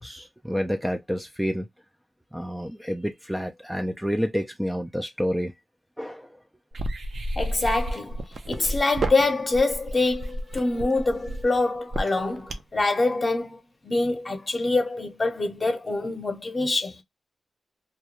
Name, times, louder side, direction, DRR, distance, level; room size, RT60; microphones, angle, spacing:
voice 1, 0.0-1.7 2.3-5.5 6.0-6.3, equal, 5° right, 0.3 m, -29 dB
sound 1, 6.7-12.8, right 1 dB, 60° right, 0.5 m, -31 dB
voice 2, 7.4-13.6 13.8-16.9, left 2 dB, 35° left, 0.7 m, -25 dB
2.3 x 2.2 x 2.8 m
wide cardioid pair, 90°, 0 cm